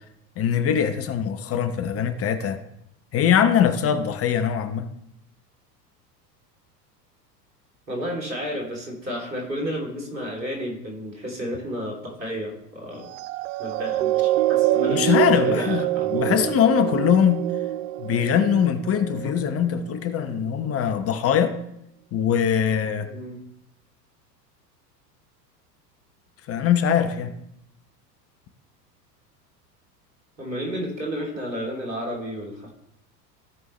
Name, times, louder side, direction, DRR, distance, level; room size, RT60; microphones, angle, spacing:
voice 1, 0.4-2.6 3.1-4.9 14.9-15.8 16.1-17.5 18.0-21.6 22.1-23.1 26.5-27.3, left 8 dB, 30° left, 9 dB, 0.8 m, -22 dB
voice 2, 7.9-13.1 13.6-16.5 23.1-23.4 30.4-32.7, equal, 85° right, -1 dB, 2.9 m, -32 dB
sound 1, 13.1-19.7 20.4-20.5, right 15 dB, 55° right, 0.5 m, -25 dB
16.0 x 5.4 x 3.2 m, 0.76 s
figure-of-eight pair, 85°, 50 cm